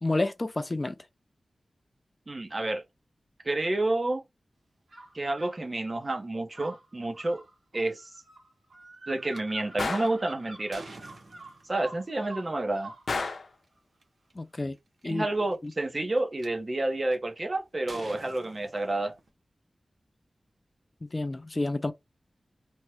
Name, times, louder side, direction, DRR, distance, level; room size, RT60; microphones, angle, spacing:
voice 1, 0.0-1.0 14.4-14.8 15.0-15.3 15.6-15.7 21.0-21.9, left 2 dB, 30° left, 0.3 m, -29 dB
voice 2, 2.3-2.8 3.4-4.2 5.1-7.4 7.7-8.1 9.1-10.8 11.7-12.9 15.0-19.1, right 2 dB, 35° right, 0.7 m, -29 dB
sound 1, 4.9-5.6 6.5-13.1, right 2 dB, 85° right, 1.7 m, -47 dB
sound 2, 9.3-9.4 10.0-11.9 13.2-13.3 14.0-14.1 14.3-14.7 15.5-16.5 17.1-17.4 17.9-19.3, right 2 dB, 65° right, 1.0 m, -47 dB
Gunshot gunfire, 9.8-10.2 13.1-13.5, left 3 dB, 75° left, 0.6 m, -31 dB
3.4 x 2.1 x 2.9 m
wide cardioid pair, 100°, 0 cm